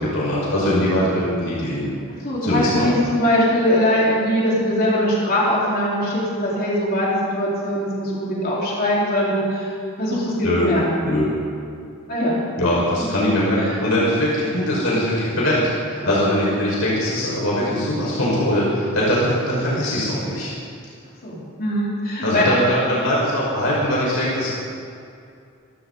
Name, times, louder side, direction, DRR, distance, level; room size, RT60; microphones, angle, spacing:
voice 1, 0.0-1.9 2.4-2.9 10.4-10.7 11.0-11.3 12.6-20.5 22.2-24.5, equal, 70° left, -6 dB, 5.1 m, -21 dB
voice 2, 2.1-9.7 10.0-11.0 12.1-12.4 13.6-13.7 21.2-22.5, equal, 45° left, -6 dB, 4.2 m, -21 dB
26.5 x 13.5 x 4.0 m, 2.4 s
head